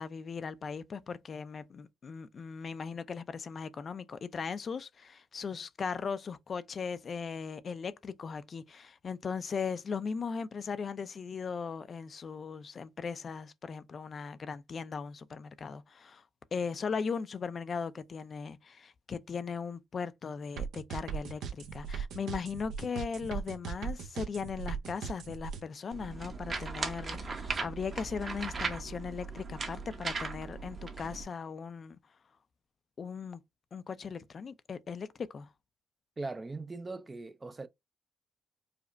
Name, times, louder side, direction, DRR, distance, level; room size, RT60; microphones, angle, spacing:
voice 1, 0.0-16.2 16.5-32.0 33.0-33.4 33.7-35.5, left 5 dB, 45° left, 0.4 m, -38 dB
sound 1, 20.6-25.6, right 7 dB, 85° right, 0.7 m, -38 dB
sound 2, 25.9-31.2, right 4 dB, 40° right, 0.8 m, -38 dB
voice 2, 36.2-37.7, right 3 dB, 25° right, 0.4 m, -40 dB
4.9 x 2.1 x 2.5 m
cardioid pair, 90°, 0 cm